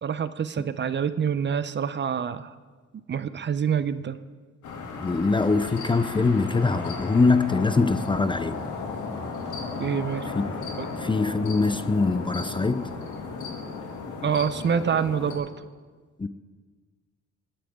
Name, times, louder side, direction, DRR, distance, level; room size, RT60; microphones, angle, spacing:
voice 1, 0.0-2.5 3.1-4.2 9.8-10.3 10.8-10.9 14.2-15.5, right 7 dB, 35° right, 0.6 m, -26 dB
sound 1, 4.6-15.4, left 4 dB, 80° left, 2.4 m, -35 dB
voice 2, 5.0-8.6 10.3-10.6 11.0-12.9 16.2-16.3, left 3 dB, 15° left, 0.5 m, -23 dB
21.0 x 10.0 x 3.6 m
cardioid pair, 90°, 30 cm